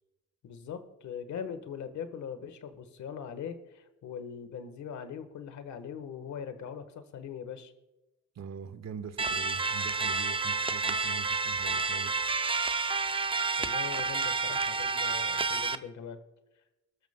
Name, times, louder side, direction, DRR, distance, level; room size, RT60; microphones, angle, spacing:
voice 1, 0.4-7.7 13.6-16.2, left 7 dB, 70° left, 10 dB, 1.4 m, -41 dB
voice 2, 8.3-12.1, right 6 dB, 60° right, 10 dB, 1.2 m, -43 dB
sound 1, 9.2-15.7, right 4 dB, 20° right, 0.5 m, -30 dB
21.5 x 13.5 x 2.2 m, 1.0 s
cardioid pair, 90°, 30 cm